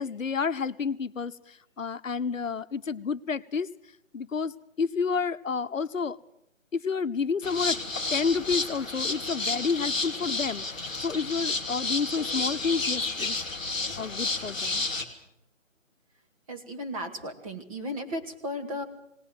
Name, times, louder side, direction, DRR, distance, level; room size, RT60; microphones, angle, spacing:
voice 1, 0.0-3.7 4.1-6.2 6.7-7.8 8.1-13.4 14.0-14.8, left 5 dB, 75° left, 12 dB, 1.0 m, -30 dB
sound 1, 7.4-15.0, left 3 dB, 5° left, 0.7 m, -31 dB
voice 2, 16.5-18.8, equal, 25° right, 4 dB, 2.1 m, -35 dB
19.5 x 19.0 x 7.9 m, 0.79 s
figure-of-eight pair, 160°, 39 cm